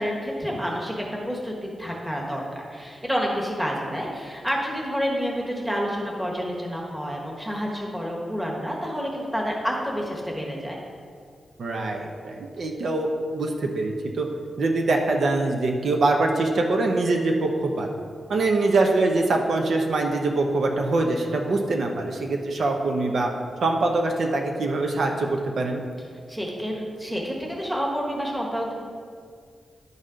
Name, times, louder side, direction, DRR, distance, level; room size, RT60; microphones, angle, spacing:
voice 1, 0.0-10.8 26.3-28.7, equal, 5° right, -2 dB, 1.3 m, -29 dB
voice 2, 11.6-14.3 14.6-17.9 18.3-23.3 23.6-25.8, right 2 dB, 65° right, 2 dB, 0.8 m, -23 dB
11.0 x 4.1 x 5.1 m, 2.1 s
wide cardioid pair, 165°, 0 cm